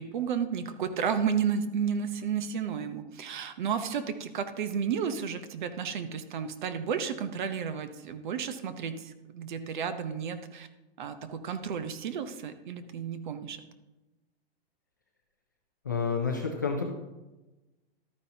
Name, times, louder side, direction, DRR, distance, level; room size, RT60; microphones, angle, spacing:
voice 1, 0.0-10.7 11.0-13.6, right 7 dB, 45° right, 10 dB, 0.8 m, -32 dB
voice 2, 15.9-16.8, left 5 dB, 20° left, 1 dB, 0.3 m, -29 dB
12.0 x 9.7 x 2.8 m, 1.1 s
hypercardioid pair, 175°, 32 cm